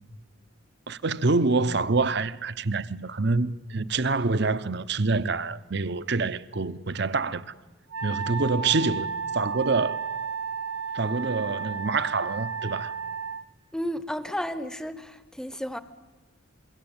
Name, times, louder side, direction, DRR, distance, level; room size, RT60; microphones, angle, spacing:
voice 1, 0.9-7.4 8.0-10.0 10.9-12.9, right 3 dB, 50° right, 0.8 m, -26 dB
Wind instrument woodwind instrument, 7.9-13.4, right 5 dB, 75° right, 1.3 m, -33 dB
voice 2, 13.7-15.8, equal, 5° left, 0.8 m, -32 dB
27.0 x 23.0 x 8.9 m
head